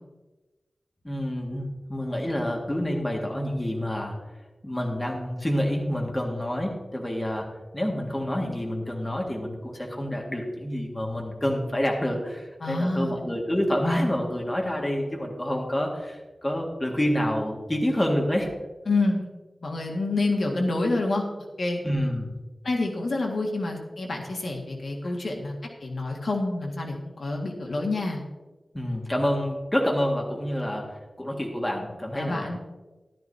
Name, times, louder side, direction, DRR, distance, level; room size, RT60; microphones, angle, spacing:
voice 1, 1.0-4.1 4.6-7.5 7.7-18.5 21.8-22.4 25.0-25.1 28.7-32.6, equal, 15° left, 0 dB, 1.8 m, -28 dB
voice 2, 12.6-13.2 18.9-19.3 19.6-21.2 21.6-21.8 22.6-25.5 25.8-28.2 32.1-32.6, left 2 dB, 70° left, 1 dB, 1.7 m, -27 dB
14.0 x 12.0 x 2.8 m, 1.2 s
wide cardioid pair, 100°, 0 cm